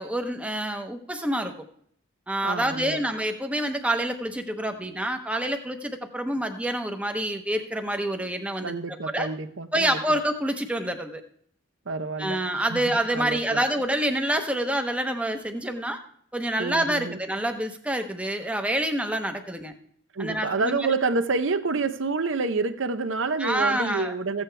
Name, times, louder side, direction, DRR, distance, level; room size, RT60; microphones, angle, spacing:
voice 1, 0.0-1.5 2.3-9.3 9.7-11.2 12.2-16.0 16.3-19.7 20.2-20.8 23.4-24.1, right 1 dB, 5° right, 5 dB, 0.8 m, -27 dB
voice 2, 2.4-3.0 8.6-10.2 11.9-13.6 16.6-17.2 20.1-24.4, right 3 dB, 65° right, 10 dB, 0.8 m, -28 dB
15.0 x 8.6 x 3.4 m, 0.64 s
head